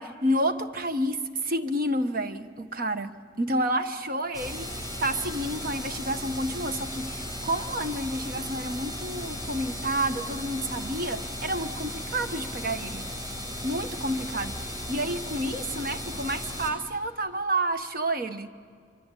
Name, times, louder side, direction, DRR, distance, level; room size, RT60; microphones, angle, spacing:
voice 1, 0.0-13.1 13.6-18.5, right 1 dB, 50° right, 8 dB, 1.2 m, -30 dB
sound 1, 4.3-16.7, equal, 25° right, 5.0 m, -36 dB
26.0 x 24.5 x 8.4 m, 2.2 s
head